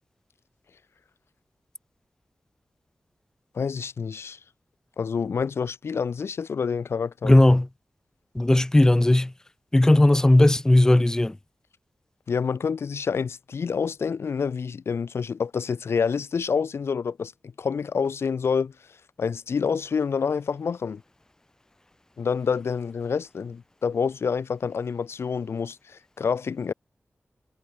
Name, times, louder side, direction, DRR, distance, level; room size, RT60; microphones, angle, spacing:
voice 1, 3.5-4.4 5.0-7.3 12.3-17.3 17.6-18.7 19.2-21.0 22.2-26.7, left 6 dB, 85° left, 1.0 m, -27 dB
voice 2, 7.2-7.7 8.4-9.3 9.7-11.3, left 1 dB, 15° left, 0.5 m, -17 dB
wide cardioid pair, 115°, 4 cm